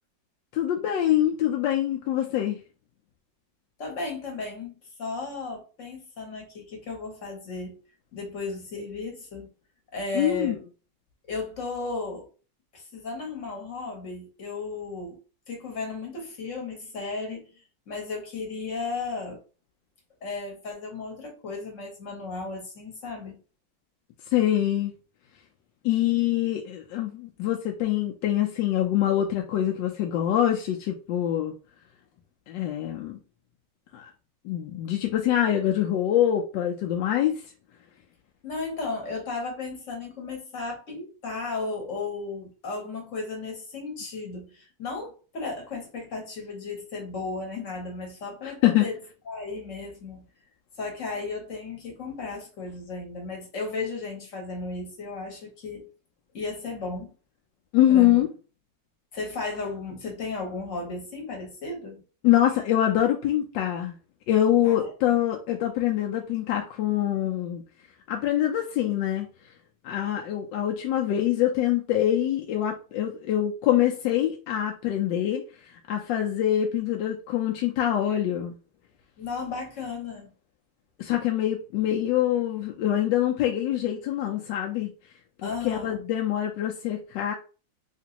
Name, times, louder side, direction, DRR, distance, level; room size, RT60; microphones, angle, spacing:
voice 1, 0.5-2.6 10.1-10.6 24.3-24.9 25.8-31.5 32.5-33.2 33.9-34.1 34.4-37.4 48.4-48.8 57.7-58.3 62.2-63.9 64.3-67.6 68.1-69.3 69.8-78.6 81.0-84.9 85.4-87.3, left 12 dB, 80° left, 1.2 m, -24 dB
voice 2, 3.8-7.7 8.1-9.5 9.9-10.6 11.3-12.3 12.7-15.2 15.5-17.5 17.9-19.4 20.2-23.4 38.4-49.0 49.3-50.2 50.8-55.9 56.3-57.1 57.9-58.2 59.1-62.0 64.6-64.9 79.2-80.3 85.4-86.0, left 3 dB, 50° left, 1.2 m, -35 dB
3.3 x 3.0 x 2.8 m
omnidirectional pair, 2.0 m